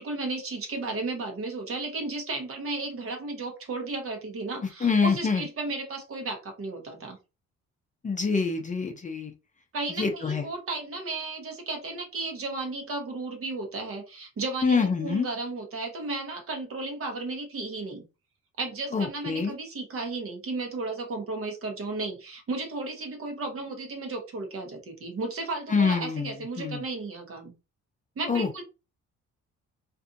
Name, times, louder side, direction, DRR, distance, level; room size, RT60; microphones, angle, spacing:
voice 1, 0.0-7.2 9.7-18.0 18.6-27.5 28.2-28.6, right 3 dB, 45° right, 3 dB, 1.0 m, -34 dB
voice 2, 4.8-5.4 8.0-9.3 10.0-10.4 14.6-15.3 18.9-19.5 25.7-26.3 26.6-26.8 28.3-28.5, left 5 dB, 25° left, 4 dB, 0.5 m, -25 dB
2.6 x 2.4 x 2.5 m, 0.29 s
cardioid pair, 90°, 30 cm